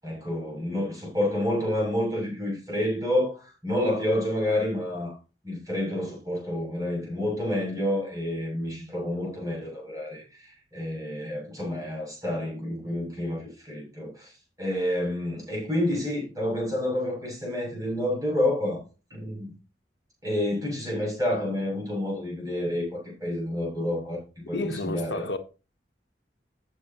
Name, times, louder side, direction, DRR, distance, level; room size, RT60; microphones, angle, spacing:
voice 1, 0.0-5.1 5.4-14.3 14.6-18.8 19.1-19.5 20.2-25.3, left 1 dB, 20° right, 7.5 m, -29 dB
voice 2, 24.5-25.4, left 2 dB, 75° left, 1.3 m, -31 dB
14.5 x 8.5 x 3.0 m
head